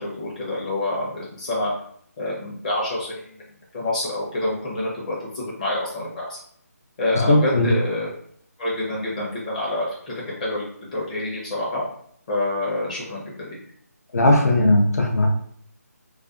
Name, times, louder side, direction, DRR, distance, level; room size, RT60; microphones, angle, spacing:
voice 1, 0.0-1.7 2.2-3.1 3.7-6.4 7.0-8.1 8.6-11.8 12.3-13.6, left 2 dB, 30° left, -6 dB, 0.7 m, -27 dB
voice 2, 7.3-7.7 14.1-15.3, left 1 dB, 70° left, 0 dB, 0.7 m, -17 dB
2.4 x 2.2 x 2.4 m, 0.62 s
figure-of-eight pair, 160°, 9 cm